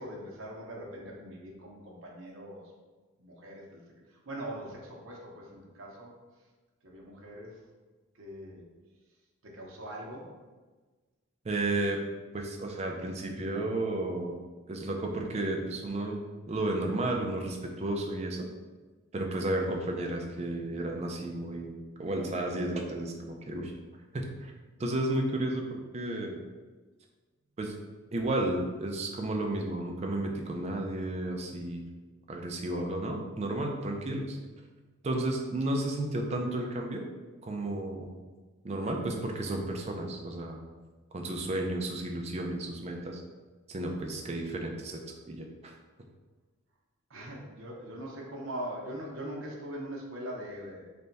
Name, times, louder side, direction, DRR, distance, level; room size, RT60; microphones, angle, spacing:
voice 1, 0.0-2.7 3.2-3.8 4.1-6.1 6.8-7.6 8.1-8.7 9.4-10.3 43.8-44.2 47.1-50.9, right 1 dB, 70° right, -2 dB, 0.8 m, -42 dB
voice 2, 11.4-12.0 12.3-14.4 14.7-16.2 16.5-18.5 19.1-21.7 22.0-23.7 24.1-24.5 24.8-26.4 27.6-27.7 28.1-31.8 32.3-34.4 35.0-37.0 37.4-38.2 38.6-40.6 41.1-43.2 43.7-45.0 45.3-45.7, right 1 dB, 30° right, 2 dB, 0.4 m, -32 dB
3.3 x 2.2 x 3.9 m, 1.3 s
head